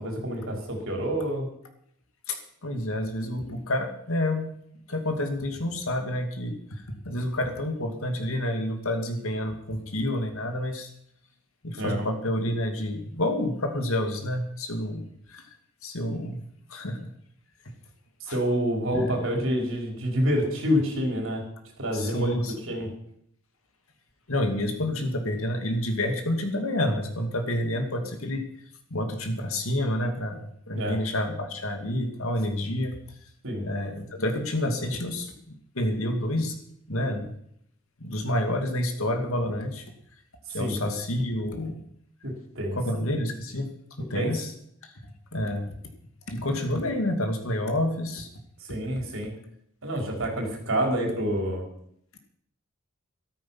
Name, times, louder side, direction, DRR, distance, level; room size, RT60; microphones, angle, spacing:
voice 1, 0.0-1.5 11.8-12.0 18.2-21.4 21.8-22.9 30.7-31.0 33.4-33.6 40.6-40.8 42.2-42.8 44.1-44.3 48.6-49.3 49.8-51.6, equal, 60° right, 1 dB, 4.5 m, -27 dB
voice 2, 2.3-4.5 4.9-10.9 11.6-15.6 15.8-16.4 16.7-17.1 17.7-17.8 18.3-18.4 18.9-19.2 21.9-22.5 24.3-28.5 28.9-33.0 33.6-36.5 36.9-37.3 38.0-39.8 40.5-41.8 42.8-43.7 44.0-44.5 44.8-44.9 45.3-45.7 46.3-48.3, left 1 dB, 70° left, 5 dB, 2.4 m, -29 dB
13.5 x 13.5 x 5.7 m, 0.70 s
head